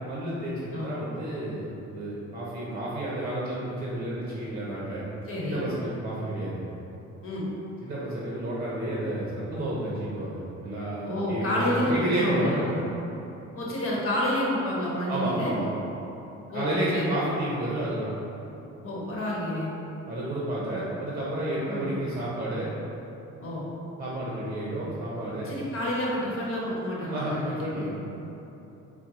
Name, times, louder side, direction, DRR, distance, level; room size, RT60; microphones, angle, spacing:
voice 1, 0.1-5.0 5.4-6.6 7.8-12.6 15.1-15.7 16.5-18.1 20.1-22.7 24.0-25.5 27.1-27.9, right 1 dB, 30° right, -6 dB, 0.8 m, -31 dB
voice 2, 5.3-5.6 7.2-7.5 11.0-12.8 13.5-15.5 16.5-17.2 18.8-19.7 21.7-21.9 23.4-23.6 25.4-27.9, left 1 dB, 45° left, -5 dB, 1.2 m, -29 dB
4.4 x 2.2 x 4.1 m, 3.0 s
cardioid pair, 90°, 30 cm